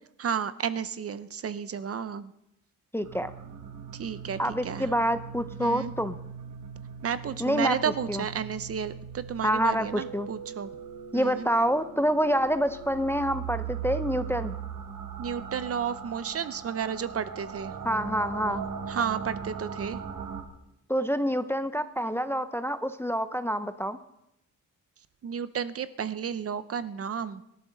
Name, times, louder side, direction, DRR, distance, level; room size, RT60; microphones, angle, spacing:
voice 1, 0.2-2.3 3.9-4.9 5.6-5.9 7.0-10.7 11.1-11.5 15.2-17.7 18.9-20.0 25.2-27.4, right 7 dB, 45° right, 14 dB, 0.6 m, -32 dB
voice 2, 2.9-3.3 4.4-6.2 7.4-7.8 8.1-8.2 9.4-10.3 11.1-14.5 17.8-18.6 20.9-24.0, equal, 10° left, 11 dB, 0.5 m, -27 dB
sound 1, 3.0-20.4, right 7 dB, 80° right, 1.8 m, -39 dB
24.5 x 12.0 x 3.9 m, 0.84 s
wide cardioid pair, 155°, 32 cm